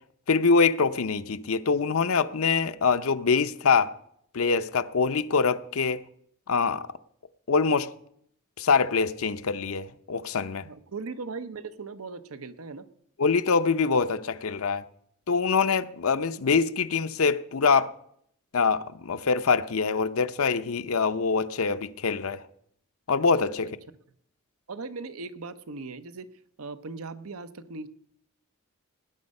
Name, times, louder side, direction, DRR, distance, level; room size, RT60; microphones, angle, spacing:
voice 1, 0.3-3.9 4.3-6.0 6.5-6.9 7.5-7.9 8.6-10.7 13.2-14.8 15.3-17.9 18.5-22.4 23.1-23.8, left 5 dB, 80° left, 0.6 m, -24 dB
voice 2, 10.6-12.9 24.7-26.3 26.6-27.9, right 4 dB, 90° right, 0.8 m, -38 dB
18.5 x 9.6 x 5.4 m
head